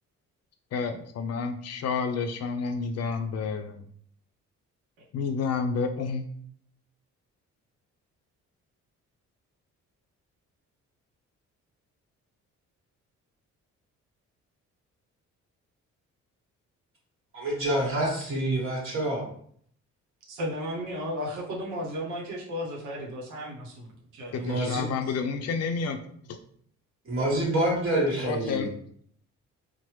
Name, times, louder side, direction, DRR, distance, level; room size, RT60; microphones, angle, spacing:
voice 1, 0.7-3.8 5.1-6.2 24.3-26.0 28.2-28.7, left 5 dB, 55° left, 6 dB, 0.5 m, -30 dB
voice 2, 17.3-19.2 24.4-25.1 27.0-28.7, right 1 dB, 45° right, -2 dB, 1.2 m, -27 dB
voice 3, 20.3-24.3, equal, 90° right, -3 dB, 0.8 m, -34 dB
3.2 x 2.1 x 3.0 m, 0.62 s
cardioid pair, 90°, 30 cm